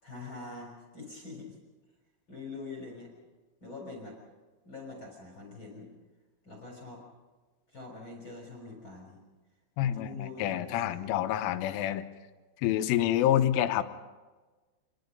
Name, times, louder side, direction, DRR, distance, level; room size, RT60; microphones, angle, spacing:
voice 1, 0.0-1.6 2.3-3.1 3.6-4.2 4.6-5.9 6.4-7.0 7.7-9.2 9.8-10.9, left 3 dB, 25° left, 0 dB, 4.0 m, -44 dB
voice 2, 9.8-12.1 12.6-13.8, left 12 dB, 80° left, 9 dB, 3.5 m, -27 dB
26.0 x 21.5 x 5.3 m, 1.3 s
omnidirectional pair, 5.7 m